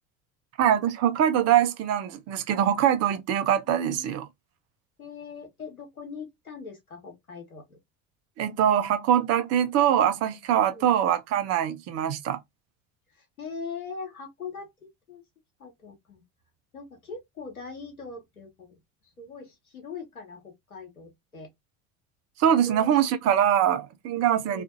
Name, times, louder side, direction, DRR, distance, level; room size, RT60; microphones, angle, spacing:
voice 1, 0.6-4.3 8.4-12.4 22.4-24.6, right 10 dB, 40° right, 0.5 m, -23 dB
voice 2, 3.7-4.1 5.0-7.8 10.7-10.9 13.1-15.2 15.6-16.2 16.7-18.8 19.2-21.5 22.6-23.1 24.5-24.6, left 5 dB, 90° left, 0.9 m, -41 dB
2.5 x 2.4 x 2.4 m
figure-of-eight pair, 70°, 42 cm